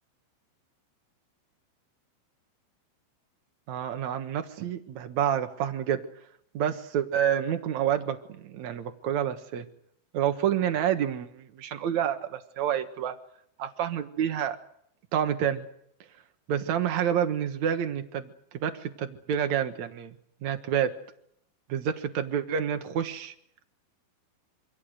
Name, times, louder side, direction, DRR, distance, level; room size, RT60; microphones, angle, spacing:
voice 1, 3.7-6.0 6.5-9.6 10.1-13.1 13.6-14.6 15.1-15.7 16.5-20.1 20.4-20.9 21.7-23.3, right 9 dB, 80° right, 7 dB, 1.6 m, -28 dB
27.0 x 25.0 x 6.5 m, 0.70 s
omnidirectional pair, 5.5 m